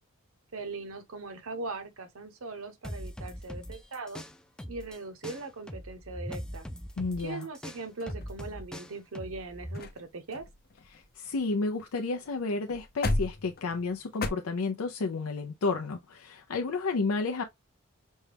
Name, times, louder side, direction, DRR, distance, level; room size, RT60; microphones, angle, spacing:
voice 1, 0.5-4.2 4.7-6.7 7.2-10.5, right 3 dB, 70° right, 0.8 m, -40 dB
sound 1, 2.8-5.0 5.2-9.8, equal, 5° left, 0.4 m, -41 dB
voice 2, 7.0-7.5 10.9-17.4, left 3 dB, 90° left, 0.5 m, -31 dB
sound 2, 8.0-8.9 9.4-9.5 9.7-10.0 10.3-11.9 12.2-12.3 12.6-14.3, left 2 dB, 45° left, 0.7 m, -35 dB
5.3 x 2.2 x 3.3 m
head